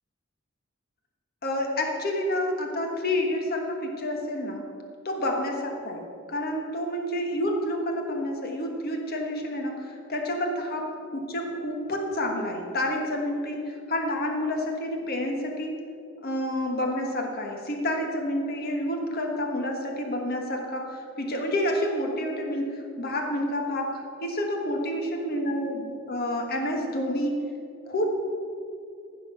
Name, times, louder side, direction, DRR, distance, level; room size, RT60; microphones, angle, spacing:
voice 1, 1.4-4.6 5.0-15.7 16.2-27.4 27.8-28.1, left 1 dB, 50° left, 2 dB, 1.5 m, -29 dB
15.0 x 6.2 x 5.8 m, 2.3 s
head